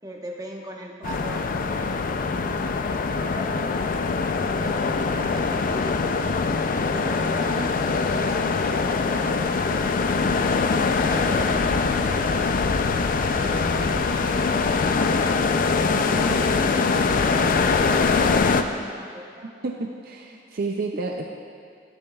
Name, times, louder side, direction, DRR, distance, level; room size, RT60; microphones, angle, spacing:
voice 1, 0.0-2.1 2.5-4.1 4.4-6.3 6.9-9.9 11.0-12.2 13.2-15.4 15.8-19.5, right 1 dB, 20° right, -1 dB, 1.0 m, -39 dB
sound 1, 1.0-18.6, left 4 dB, 50° left, 0.4 m, -23 dB
voice 2, 19.6-21.3, right 3 dB, 55° right, 2 dB, 0.5 m, -30 dB
18.0 x 7.0 x 2.3 m, 2.2 s
head